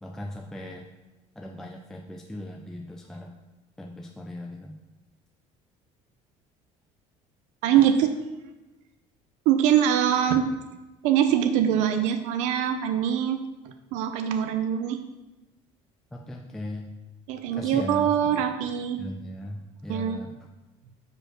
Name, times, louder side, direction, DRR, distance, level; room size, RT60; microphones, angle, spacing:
voice 1, 0.0-0.8 1.4-3.3 3.8-4.8 7.7-7.9 16.1-16.9 17.5-18.4 19.0-20.3, left 1 dB, 5° left, 0 dB, 0.3 m, -38 dB
voice 2, 7.6-8.1 9.5-10.5 11.0-13.4 13.9-15.0 17.3-19.0 19.9-20.2, right 9 dB, 70° right, 7 dB, 0.5 m, -23 dB
5.1 x 4.4 x 6.0 m, 1.1 s
cardioid pair, 180°, 13 cm